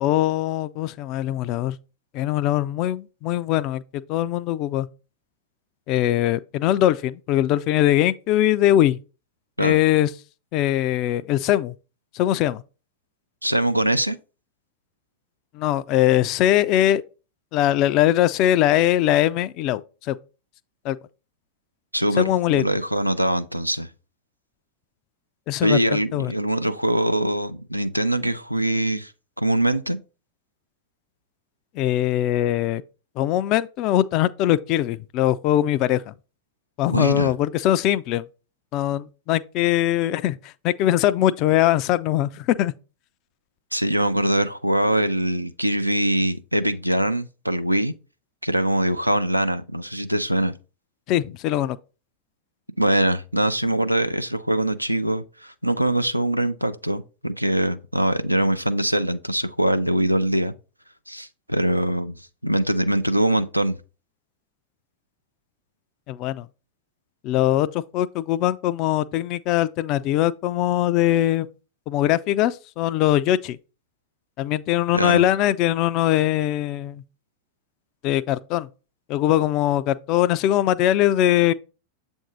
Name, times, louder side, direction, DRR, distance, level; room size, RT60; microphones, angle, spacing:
voice 1, 0.0-1.8 2.1-4.9 5.9-9.0 9.6-10.1 10.5-11.7 12.1-12.6 15.5-17.0 17.5-19.8 20.1-20.2 20.8-21.0 22.2-22.6 25.5-26.3 31.8-32.8 33.2-36.1 36.8-38.2 38.7-40.4 40.6-42.7 51.1-51.8 66.1-66.5 67.2-71.5 71.9-73.6 74.4-77.0 78.0-78.7 79.1-81.5, left 13 dB, 40° left, 0.3 m, -21 dB
voice 2, 13.4-14.2 21.9-23.9 25.6-29.1 29.4-30.0 36.9-37.3 43.7-47.9 48.4-50.5 52.8-60.5 61.1-62.2 62.4-63.8 74.9-75.3, right 1 dB, 90° right, 0.4 m, -23 dB
7.6 x 2.6 x 4.8 m
figure-of-eight pair, 90°, 0 cm